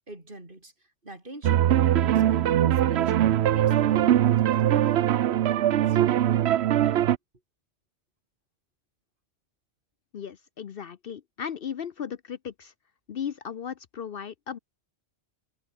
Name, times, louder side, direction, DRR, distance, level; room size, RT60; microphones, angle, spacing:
voice 1, 0.0-6.0, right 2 dB, 50° right, 4.8 m, -44 dB
sound 1, 1.4-7.2, right 11 dB, 70° right, 0.9 m, -21 dB
voice 2, 10.1-12.7 13.1-14.6, left 8 dB, 60° left, 0.9 m, -36 dB
omnidirectional pair, 1.2 m